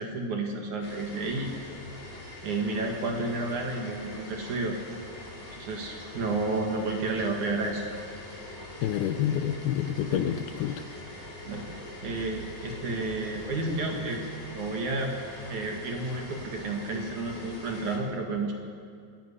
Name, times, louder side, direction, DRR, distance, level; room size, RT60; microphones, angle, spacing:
voice 1, 0.0-1.5 2.4-4.8 5.5-7.8 10.1-10.2 11.5-14.3 14.5-15.2 15.5-18.5, right 3 dB, 55° right, 2 dB, 2.8 m, -31 dB
sound 1, 0.8-18.0, left 2 dB, 60° left, 7.8 m, -43 dB
voice 2, 8.8-10.8, left 10 dB, 75° left, 8 dB, 2.4 m, -28 dB
26.5 x 11.0 x 9.9 m, 2.2 s
omnidirectional pair, 4.9 m